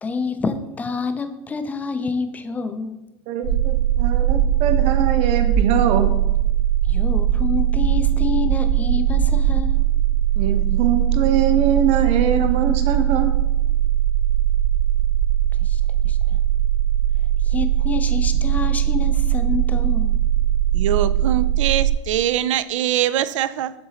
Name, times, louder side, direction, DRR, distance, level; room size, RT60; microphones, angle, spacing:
voice 1, 0.0-3.0 6.8-9.8 15.6-16.4 17.4-20.2, left 4 dB, 10° left, 9 dB, 0.4 m, -28 dB
voice 2, 3.3-6.1 10.4-13.3, right 8 dB, 45° right, 7 dB, 0.8 m, -22 dB
sound 1, 3.4-21.9, right 11 dB, 65° right, 1.4 m, -20 dB
voice 3, 20.7-23.7, right 11 dB, 85° right, 15 dB, 0.4 m, -22 dB
7.0 x 3.8 x 4.0 m, 0.98 s
supercardioid pair, 130°, 16 cm